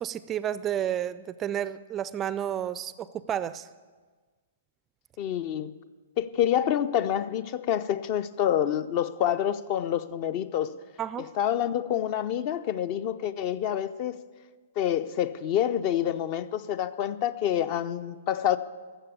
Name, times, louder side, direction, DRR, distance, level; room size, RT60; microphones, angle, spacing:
voice 1, 0.0-3.7 11.0-11.3, right 10 dB, 20° right, 0.4 m, -31 dB
voice 2, 5.2-5.7 6.2-10.7 11.4-14.2 14.8-18.6, left 10 dB, 35° left, 0.5 m, -27 dB
13.5 x 7.1 x 8.4 m
figure-of-eight pair, 115°, 0 cm